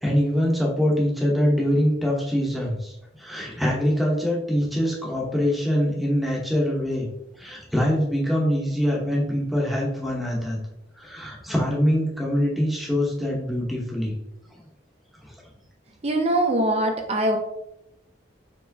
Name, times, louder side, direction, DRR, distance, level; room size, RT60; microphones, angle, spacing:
voice 1, 0.0-7.1 7.4-10.6 11.0-14.1 14.5-14.6 15.2-15.3, equal, ahead, -3 dB, 0.8 m, -24 dB
voice 2, 16.0-17.4, right 1 dB, 35° right, 4 dB, 0.5 m, -22 dB
4.4 x 3.1 x 2.6 m, 0.84 s
head